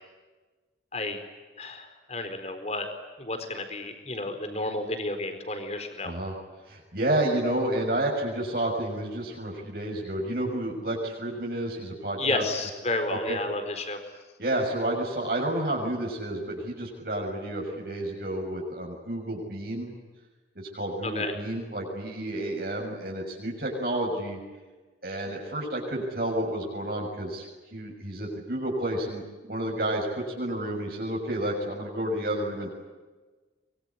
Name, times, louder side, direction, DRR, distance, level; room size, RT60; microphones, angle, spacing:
voice 1, 1.6-2.9 3.2-6.1 12.2-14.0 21.0-21.3, left 2 dB, 35° left, 8 dB, 4.4 m, -31 dB
voice 2, 6.6-12.4 13.1-13.4 14.4-19.9 20.5-24.4 25.0-30.1 30.3-32.7, right 1 dB, 55° right, 0 dB, 6.8 m, -30 dB
24.5 x 23.5 x 9.8 m, 1.3 s
head